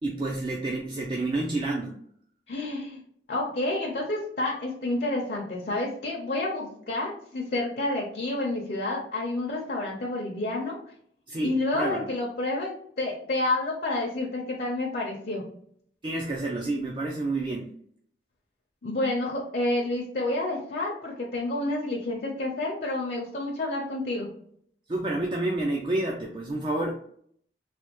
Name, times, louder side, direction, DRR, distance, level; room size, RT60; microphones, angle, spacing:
voice 1, 0.0-2.0 11.3-12.1 16.0-17.7 24.9-26.9, right 2 dB, 25° right, 0 dB, 0.3 m, -29 dB
voice 2, 2.5-3.0 3.3-10.8 11.4-15.4 18.8-24.3, left 2 dB, 55° left, -2 dB, 0.6 m, -29 dB
3.3 x 2.3 x 2.9 m, 0.64 s
head